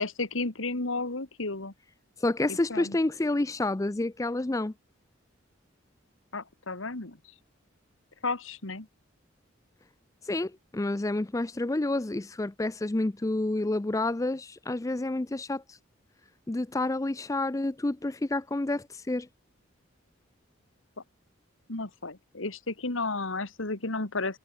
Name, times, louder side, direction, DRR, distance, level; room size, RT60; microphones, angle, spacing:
voice 1, 0.0-1.7 2.5-3.0 6.3-7.2 8.2-8.9 21.7-24.4, left 3 dB, 80° left, 2.2 m, -33 dB
voice 2, 2.2-4.7 10.2-15.8 16.5-19.3, left 2 dB, 15° left, 0.4 m, -29 dB
head